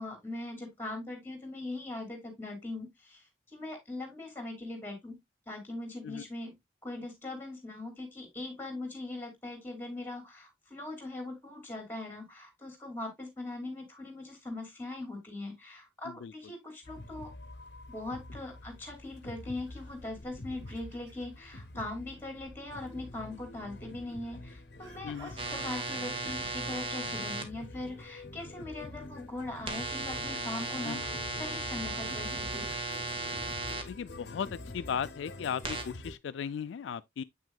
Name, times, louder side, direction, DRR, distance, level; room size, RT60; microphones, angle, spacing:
voice 1, 0.0-5.2 5.5-6.6 6.8-17.3 17.9-32.7, left 2 dB, 10° left, 2.8 m, -41 dB
sound 1, 16.8-36.2, left 2 dB, 60° left, 0.8 m, -46 dB
Chicken rooster, 20.2-21.4 24.8-26.9, right 2 dB, 70° right, 3.0 m, -53 dB
sound 2, 25.4-27.4 29.7-33.8 35.6-35.8, right 3 dB, 30° right, 1.1 m, -36 dB
voice 2, 33.9-37.2, left 7 dB, 80° left, 0.3 m, -36 dB
8.1 x 6.1 x 2.3 m
head